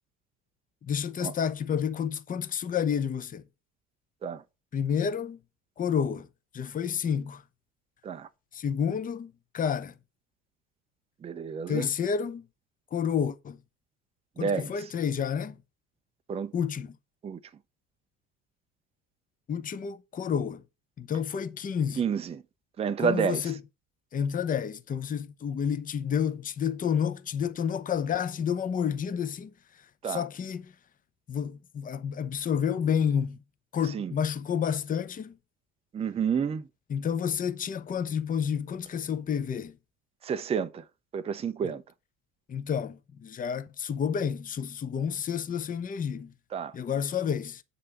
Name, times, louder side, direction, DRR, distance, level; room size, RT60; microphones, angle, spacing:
voice 1, 0.8-3.4 4.7-5.4 5.8-6.3 6.5-7.4 8.5-9.9 11.7-12.4 12.9-13.6 14.4-15.6 16.5-17.0 19.5-20.6 21.0-22.0 23.0-23.6 24.1-29.5 30.0-30.7 31.3-33.4 33.7-35.3 36.9-39.8 41.6-41.7 42.5-46.3 46.7-47.6, left 7 dB, 20° left, 0.7 m, -30 dB
voice 2, 11.2-11.9 14.4-14.7 16.3-16.5 17.2-17.4 22.0-22.4 22.8-23.5 30.0-30.2 33.9-34.1 35.9-36.7 40.2-40.8 41.1-41.8 46.5-46.7, right 7 dB, 15° right, 0.5 m, -30 dB
8.3 x 5.4 x 5.8 m
figure-of-eight pair, 65°, 41 cm